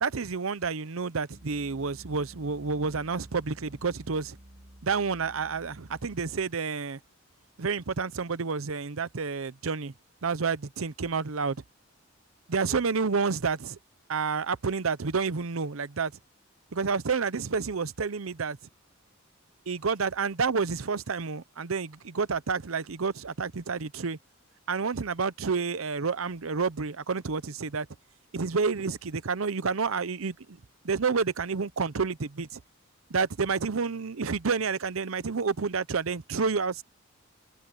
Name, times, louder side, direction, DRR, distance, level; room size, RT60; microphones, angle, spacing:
voice 1, 0.0-4.4 4.8-7.0 7.6-9.9 10.2-11.6 12.5-13.8 14.1-16.1 16.7-18.6 19.7-24.2 24.7-27.9 28.3-30.6 30.8-32.6 33.1-36.8, right 5 dB, 85° right, 0.8 m, -29 dB
sound 1, 1.3-6.6, right 1 dB, 30° right, 1.2 m, -52 dB
head